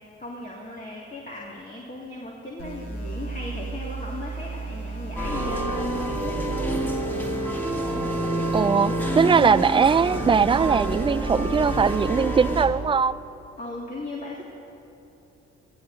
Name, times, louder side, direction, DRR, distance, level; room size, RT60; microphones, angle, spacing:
voice 1, 0.2-6.6 13.6-14.4, left 2 dB, 25° left, -4 dB, 2.1 m, -37 dB
sound 1, 2.6-12.6, right 3 dB, 60° left, 3.8 m, -36 dB
sound 2, 5.2-12.7, right 1 dB, 5° left, 2.4 m, -27 dB
voice 2, 8.5-13.2, right 6 dB, 15° right, 17 dB, 0.3 m, -20 dB
21.0 x 15.0 x 2.7 m, 3.0 s
hypercardioid pair, 45°, 32 cm